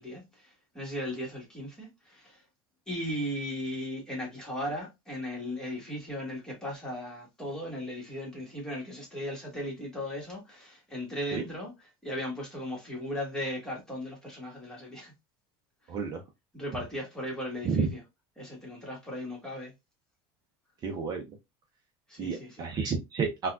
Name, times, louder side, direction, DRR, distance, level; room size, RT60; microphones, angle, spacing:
voice 1, 0.0-2.4 2.9-11.7 12.0-15.1 16.5-18.0 18.4-19.7 22.1-22.7, equal, 5° left, 1.4 m, -37 dB
voice 2, 15.9-16.2 17.6-17.9 20.8-21.3 22.2-23.5, right 5 dB, 35° right, 0.6 m, -30 dB
3.9 x 2.3 x 2.3 m
cardioid pair, 145°, 12 cm